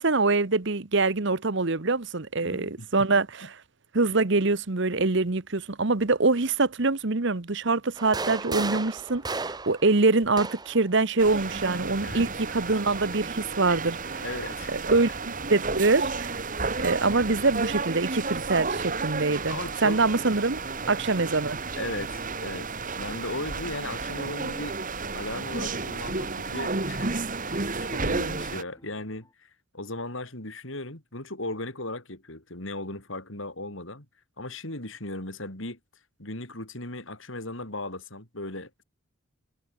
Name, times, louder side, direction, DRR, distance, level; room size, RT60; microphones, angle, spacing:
voice 1, 0.0-3.5 3.9-14.2 14.7-16.4 16.8-20.6 20.9-21.6, right 3 dB, 55° right, 1.1 m, -24 dB
voice 2, 2.4-2.9 12.0-12.3 14.2-15.1 19.5-20.0 21.8-22.7 22.9-24.8 25.1-29.5 29.7-34.1 34.4-35.8 36.2-38.8, left 2 dB, 65° left, 5.3 m, -37 dB
sound 1, 8.0-10.9 12.0-13.0, right 3 dB, 20° right, 1.0 m, -35 dB
sound 2, 11.2-28.6, right 3 dB, 40° right, 2.1 m, -32 dB
sound 3, 27.8-29.3, left 1 dB, 15° left, 7.5 m, -60 dB
head